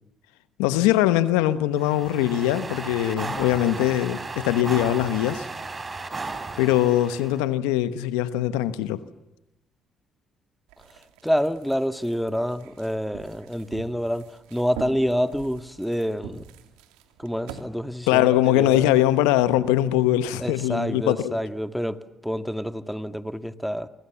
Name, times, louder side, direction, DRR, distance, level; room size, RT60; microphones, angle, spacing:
voice 1, 0.6-5.5 6.6-9.0 18.1-21.4, left 13 dB, 85° left, 1.2 m, -22 dB
sound 1, 1.7-7.4, right 3 dB, 30° right, 5.3 m, -35 dB
sound 2, 10.7-17.6, right 8 dB, 85° right, 2.9 m, -44 dB
voice 2, 10.8-16.5 17.2-18.9 20.4-23.9, equal, ahead, 1.9 m, -28 dB
29.0 x 25.0 x 7.2 m
hypercardioid pair, 55°, 0 cm